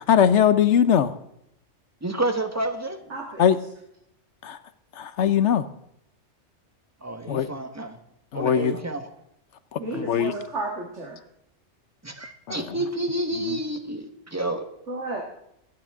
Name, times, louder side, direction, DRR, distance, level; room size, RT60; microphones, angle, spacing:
voice 1, 0.1-1.1 3.4-3.6 4.4-4.6 5.0-5.7 7.3-7.5 8.3-8.7 9.7-10.3 13.5-13.6, left 8 dB, 80° left, 12 dB, 1.1 m, -20 dB
voice 2, 2.0-3.0 7.0-8.0 8.3-9.0 9.9-10.0 12.0-14.7, right 1 dB, 15° right, 6 dB, 1.3 m, -29 dB
voice 3, 3.1-3.5 9.8-11.2 14.9-15.2, right 2 dB, 85° right, 0 dB, 2.2 m, -32 dB
25.5 x 9.3 x 3.6 m, 0.77 s
omnidirectional pair, 1.2 m